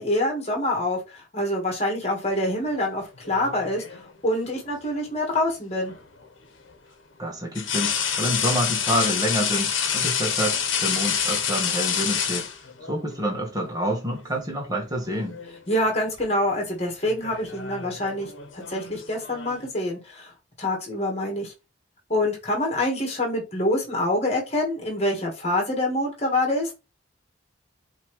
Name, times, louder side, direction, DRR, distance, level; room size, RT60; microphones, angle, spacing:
voice 1, 0.0-3.8 4.2-5.9 15.7-20.3 20.6-21.5 22.1-26.7, left 1 dB, 35° left, 1.6 m, -26 dB
sound 1, 3.2-4.1 5.9-6.0 7.5-13.0 14.2-14.4 14.8-15.6 15.8-16.2 17.1-19.7, left 7 dB, 85° left, 1.0 m, -27 dB
voice 2, 7.2-12.5 12.9-15.4, equal, 20° right, 1.4 m, -28 dB
5.4 x 3.0 x 3.2 m
head